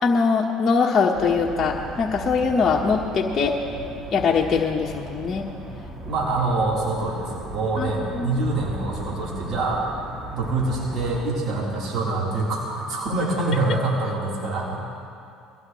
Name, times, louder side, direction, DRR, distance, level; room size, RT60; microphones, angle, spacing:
voice 1, 0.0-3.6 4.1-5.5 7.8-8.4, left 5 dB, 35° left, -1 dB, 1.3 m, -22 dB
sound 1, 1.1-11.3, right 1 dB, 25° right, 2.7 m, -37 dB
voice 2, 6.1-9.9 10.3-14.9, right 2 dB, 55° right, -5 dB, 4.0 m, -25 dB
22.5 x 16.0 x 3.2 m, 2.5 s
supercardioid pair, 95°, 0 cm